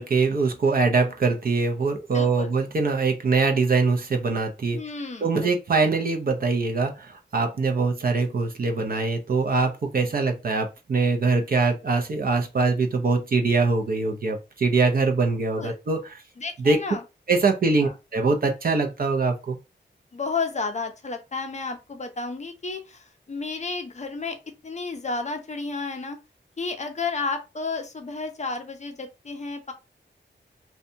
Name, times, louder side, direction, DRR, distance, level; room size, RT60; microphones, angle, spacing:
voice 1, 0.0-4.8 5.2-16.2 16.6-16.8 17.3-19.6, right 4 dB, 50° right, 4 dB, 0.5 m, -23 dB
voice 2, 2.1-2.5 4.7-5.5 15.6-15.8 16.4-17.0 17.8-17.9 20.1-24.4 24.6-26.2 26.6-29.7, left 4 dB, 35° left, 5 dB, 0.5 m, -32 dB
2.6 x 2.1 x 2.6 m, 0.27 s
wide cardioid pair, 130°, 20 cm